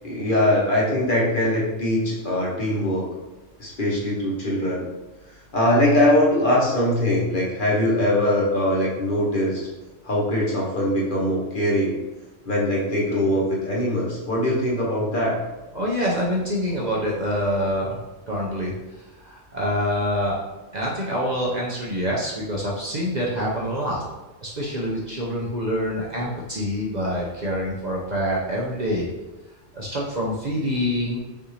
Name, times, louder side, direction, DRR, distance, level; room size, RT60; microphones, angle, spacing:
voice 1, 0.0-3.1 3.6-4.9 5.5-9.7 10.0-11.9 12.5-15.4, left 1 dB, 45° left, -4 dB, 1.1 m, -22 dB
voice 2, 15.7-18.0 18.3-18.7 19.2-20.4 20.7-24.0 24.4-29.1 29.7-31.2, equal, 45° right, -4 dB, 0.7 m, -26 dB
5.4 x 2.6 x 3.2 m, 1.1 s
omnidirectional pair, 1.3 m